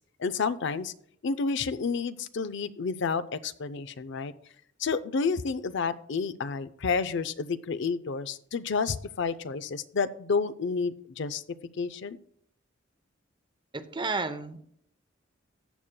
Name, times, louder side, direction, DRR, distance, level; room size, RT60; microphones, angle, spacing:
voice 1, 0.2-0.9 1.2-4.3 4.8-11.4 11.8-12.2, left 5 dB, 65° left, 13 dB, 0.5 m, -30 dB
voice 2, 13.7-14.7, right 3 dB, 25° right, 10 dB, 0.7 m, -32 dB
14.0 x 8.7 x 2.2 m, 0.66 s
head